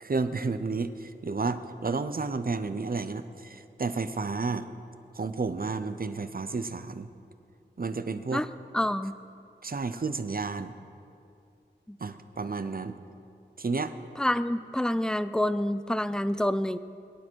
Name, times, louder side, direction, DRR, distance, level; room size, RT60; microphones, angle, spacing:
voice 1, 0.0-4.7 5.1-7.1 7.8-8.4 9.6-10.7 12.0-12.9 13.6-13.9, right 4 dB, 50° right, 11 dB, 0.7 m, -31 dB
voice 2, 8.7-9.1 11.9-12.0 14.2-16.8, left 1 dB, 5° left, 14 dB, 0.4 m, -27 dB
23.0 x 10.0 x 4.6 m, 2.5 s
wide cardioid pair, 70°, 19 cm